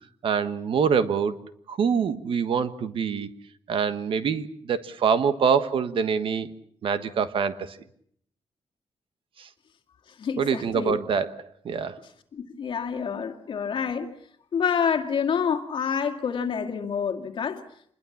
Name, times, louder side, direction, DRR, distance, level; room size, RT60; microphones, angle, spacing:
voice 1, 0.2-1.4 1.7-3.3 3.7-6.5 6.8-7.8 9.4-9.5 10.4-12.0, right 6 dB, 65° right, 1.4 m, -25 dB
voice 2, 10.2-11.0 12.3-14.1 14.5-17.6, left 7 dB, 60° left, 2.2 m, -27 dB
26.5 x 21.0 x 7.2 m
wide cardioid pair, 170°, 10 cm